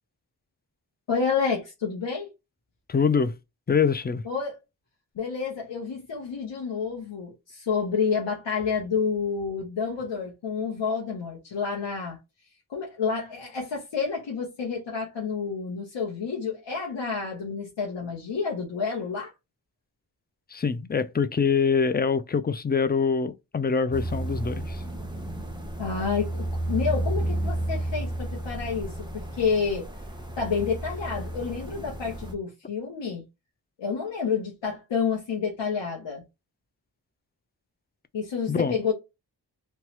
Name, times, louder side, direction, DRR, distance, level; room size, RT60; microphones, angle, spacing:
voice 1, 1.1-2.3 4.2-4.6 5.2-12.2 12.7-19.3 25.8-29.9 30.4-33.3 33.8-36.2 38.1-38.9, left 5 dB, 90° left, 0.8 m, -29 dB
voice 2, 2.9-3.3 3.7-4.2 20.5-24.8 38.5-38.8, left 5 dB, 25° left, 0.3 m, -24 dB
sound 1, 23.9-32.3, right 1 dB, 10° right, 0.8 m, -32 dB
3.0 x 2.3 x 2.8 m
cardioid pair, 50°, 43 cm